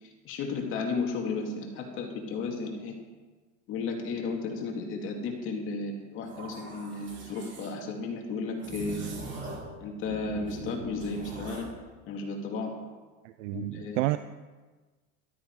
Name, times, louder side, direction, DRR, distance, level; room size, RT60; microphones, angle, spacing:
voice 1, 0.2-3.0 3.7-9.0 9.8-11.7 12.1-12.7 13.5-14.1, left 4 dB, 35° left, 1 dB, 2.5 m, -34 dB
sound 1, 6.2-7.7 8.6-9.7 10.0-11.7, right 2 dB, 35° right, 3.5 m, -41 dB
voice 2, 13.4-14.2, right 18 dB, 85° right, 12 dB, 0.6 m, -29 dB
13.5 x 13.0 x 4.8 m, 1.3 s
supercardioid pair, 165°, 35 cm